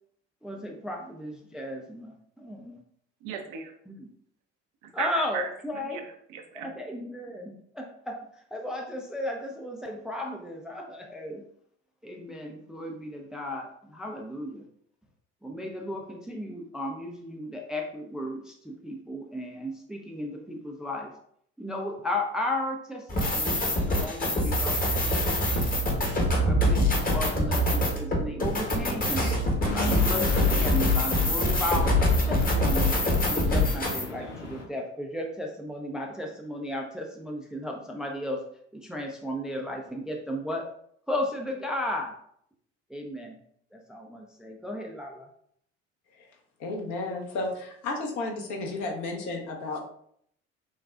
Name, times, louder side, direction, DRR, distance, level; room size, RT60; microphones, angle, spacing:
voice 1, 0.4-2.8 3.9-4.1 4.9-6.0 6.5-8.2 8.5-11.4 12.0-14.6 15.4-21.1 21.6-25.9 26.4-29.3 29.7-31.9 32.2-32.9 33.2-38.5 38.7-40.7 41.1-42.2 42.9-43.4 43.7-45.3, left 1 dB, ahead, 1 dB, 0.5 m, -35 dB
voice 2, 3.2-3.7 4.8-5.5 5.8-6.7, right 8 dB, 60° right, 5 dB, 0.7 m, -36 dB
sound 1, 23.1-34.0, left 1 dB, 25° left, 1.2 m, -24 dB
sound 2, 29.6-34.6, left 2 dB, 85° left, 0.8 m, -36 dB
voice 3, 46.6-49.8, left 2 dB, 50° left, 1 dB, 1.1 m, -33 dB
6.1 x 2.3 x 2.4 m, 0.67 s
figure-of-eight pair, 60°, 35 cm